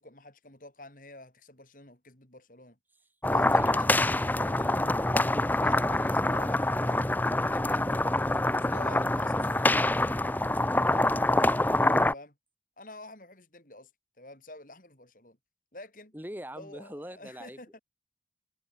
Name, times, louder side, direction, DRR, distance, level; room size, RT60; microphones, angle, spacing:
voice 1, 0.0-2.8 3.3-5.0 5.5-7.1 7.5-7.9 8.5-10.1 12.0-12.4 12.8-13.9 14.2-15.4 15.7-16.1 16.6-17.8, left 2 dB, 50° left, 4.6 m, -49 dB
sound 1, 3.2-12.1, left 1 dB, 10° left, 0.6 m, -25 dB
voice 2, 3.6-4.0 16.1-17.8, equal, 10° right, 3.3 m, -42 dB
head